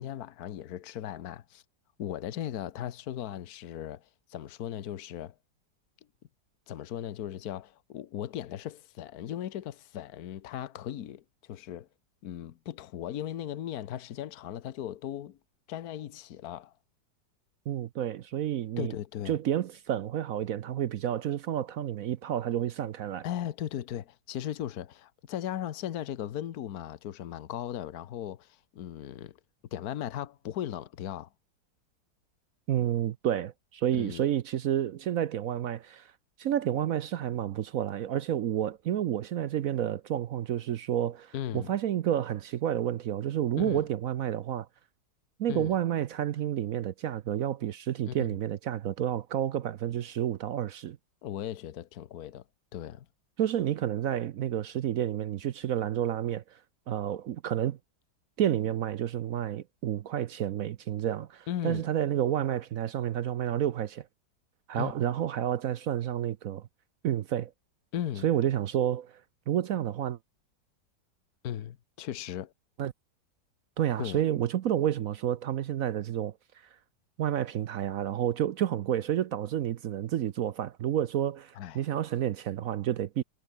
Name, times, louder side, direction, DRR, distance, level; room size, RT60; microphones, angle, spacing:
voice 1, 0.0-1.6 2.0-5.4 6.7-11.9 12.2-15.4 15.7-16.7 18.8-19.4 23.2-29.4 29.7-31.3 33.9-34.2 41.3-41.7 43.6-43.8 45.5-45.8 48.1-48.3 51.2-52.4 52.7-53.1 61.5-61.9 64.8-65.0 67.9-68.3 71.4-72.5 74.0-74.2 81.5-81.8, left 11 dB, 60° left, 1.4 m, -37 dB
voice 2, 17.7-18.9 19.3-23.2 32.7-36.1 36.4-44.7 45.4-51.0 53.4-56.4 56.9-57.8 58.4-64.1 64.7-66.6 67.0-67.5 68.2-69.1 69.5-70.2 72.8-72.9 73.8-76.3 77.2-83.2, right 11 dB, 60° right, 0.9 m, -30 dB
omnidirectional pair, 1.9 m